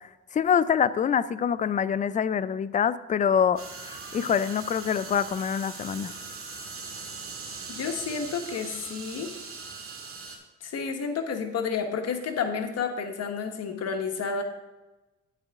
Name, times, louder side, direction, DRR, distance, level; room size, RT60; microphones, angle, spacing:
voice 1, 0.3-6.1, left 7 dB, 25° left, 16 dB, 0.4 m, -25 dB
sound 1, 3.6-10.4, right 4 dB, 45° right, 2.0 m, -40 dB
voice 2, 7.7-9.3 10.6-14.4, left 5 dB, 55° left, 5 dB, 1.3 m, -30 dB
9.1 x 8.3 x 3.6 m, 1.1 s
cardioid pair, 90°, 30 cm